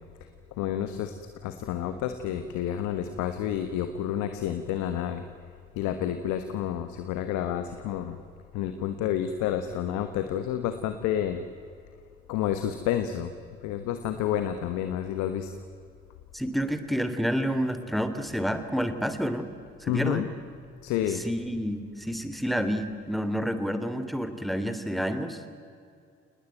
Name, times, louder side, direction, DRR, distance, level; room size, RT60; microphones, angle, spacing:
voice 1, 0.6-1.1 1.4-5.2 5.7-8.2 8.5-11.4 12.3-13.3 13.6-15.5 19.9-20.3 20.8-21.2, left 10 dB, 65° left, 9 dB, 1.4 m, -29 dB
voice 2, 16.3-19.5 19.8-20.2 21.2-25.4, equal, ahead, 9 dB, 2.9 m, -29 dB
29.0 x 19.5 x 9.2 m, 2.4 s
figure-of-eight pair, 45°, 32 cm